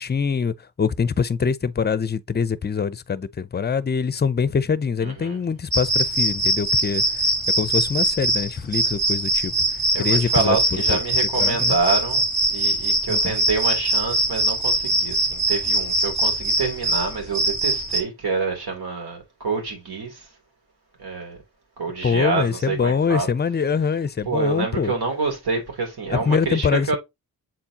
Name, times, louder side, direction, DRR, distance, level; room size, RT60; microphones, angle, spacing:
voice 1, 0.0-7.0 7.6-9.5 10.0-11.0 11.4-11.7 13.1-13.4 22.0-24.9 26.1-27.0, left 6 dB, 25° left, 0.5 m, -24 dB
voice 2, 5.0-5.4 9.9-12.2 12.5-20.3 21.0-21.4 21.8-23.3 24.2-27.0, right 4 dB, 80° right, 3.1 m, -27 dB
sound 1, 5.7-18.0, right 1 dB, ahead, 1.4 m, -22 dB
7.6 x 4.4 x 2.8 m
cardioid pair, 75°, 38 cm